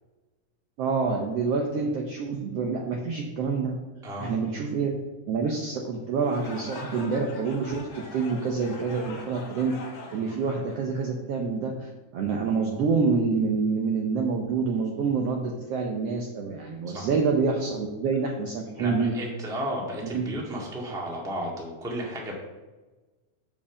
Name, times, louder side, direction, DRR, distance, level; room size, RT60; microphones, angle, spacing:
voice 1, 0.8-3.8 4.2-4.9 5.3-9.8 10.1-19.2 20.0-20.3, right 4 dB, 75° right, 1 dB, 1.5 m, -27 dB
sound 1, 6.1-11.4, left 3 dB, 65° left, 1.0 m, -43 dB
voice 2, 18.8-22.3, equal, ahead, -3 dB, 0.9 m, -33 dB
7.0 x 5.3 x 6.9 m, 1.2 s
omnidirectional pair, 3.6 m